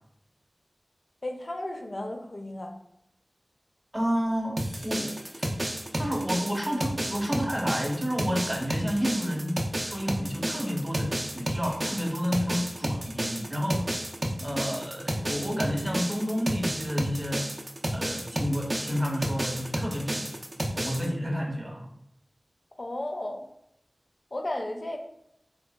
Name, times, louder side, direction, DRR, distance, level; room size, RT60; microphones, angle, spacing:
voice 1, 1.2-2.7 14.4-14.7 22.8-23.4 24.3-25.0, left 1 dB, 55° left, 3 dB, 0.4 m, -34 dB
voice 2, 3.9-5.2 5.9-13.9 14.4-17.5 17.9-20.3 20.7-21.9, equal, 15° right, 0 dB, 0.8 m, -30 dB
sound 1, 4.6-21.1, right 1 dB, 50° right, 0.4 m, -31 dB
3.4 x 2.3 x 2.2 m, 0.78 s
wide cardioid pair, 40°, 0 cm